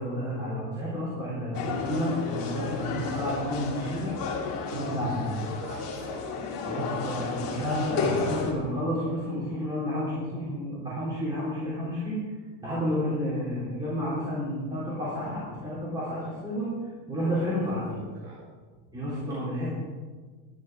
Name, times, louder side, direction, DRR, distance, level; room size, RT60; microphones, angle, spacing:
voice 1, 0.0-4.1 4.7-5.5 6.7-12.2 12.6-16.7 17.1-18.0 18.9-19.7, equal, 10° right, -10 dB, 3.6 m, -31 dB
sound 1, 1.5-8.5, left 4 dB, 45° left, 2.3 m, -32 dB
voice 2, 5.4-6.4 17.5-18.5 18.9-19.3, equal, 30° right, -4 dB, 2.3 m, -44 dB
12.0 x 11.5 x 4.7 m, 1.4 s
cardioid pair, 165°, 47 cm